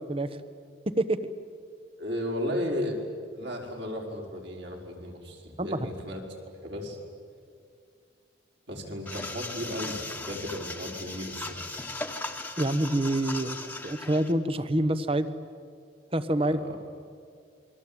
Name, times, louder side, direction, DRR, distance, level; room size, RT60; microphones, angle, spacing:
voice 1, 2.0-3.1 3.3-6.2 6.6-7.0 8.7-11.6 16.4-16.8, left 1 dB, 60° right, 0 dB, 4.9 m, -34 dB
sound 1, 9.1-14.3, left 2 dB, 10° left, 1.4 m, -38 dB
voice 2, 12.6-13.6 13.8-15.3 16.1-16.6, right 1 dB, 30° right, 12 dB, 1.1 m, -26 dB
28.0 x 22.0 x 8.9 m, 2.3 s
head